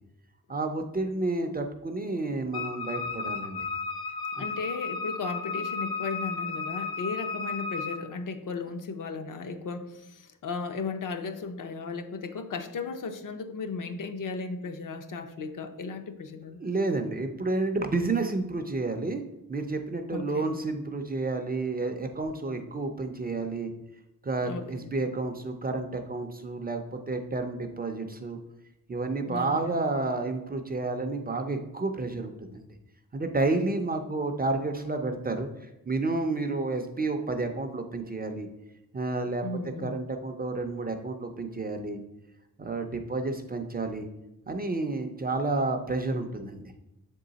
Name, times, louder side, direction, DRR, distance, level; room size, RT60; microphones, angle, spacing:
voice 1, 0.5-3.6 4.4-4.5 16.6-19.2 19.5-23.7 24.2-28.4 28.9-32.7 33.1-38.5 38.9-39.4 39.8-42.0 42.6-44.1 44.5-46.7, right 3 dB, 25° right, 5 dB, 0.4 m, -30 dB
Wind instrument woodwind instrument, 2.5-8.0, left 4 dB, 90° left, 0.9 m, -34 dB
voice 2, 4.4-16.6 20.1-20.5 24.4-24.9 29.2-29.8 39.4-39.9, left 4 dB, 60° left, 7 dB, 0.6 m, -36 dB
7.4 x 3.8 x 3.9 m, 0.89 s
wide cardioid pair, 175°, 35 cm